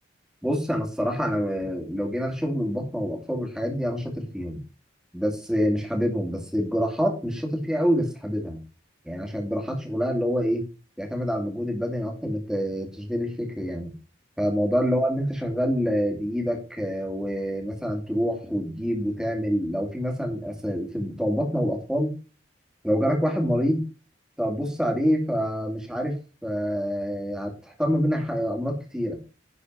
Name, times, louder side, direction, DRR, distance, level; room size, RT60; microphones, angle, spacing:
voice 1, 0.4-4.6 5.1-8.6 9.0-10.6 11.0-13.9 14.4-22.1 22.8-23.8 24.4-26.2 26.4-29.2, equal, 5° right, 1 dB, 2.5 m, -26 dB
11.0 x 4.9 x 5.5 m, 0.34 s
head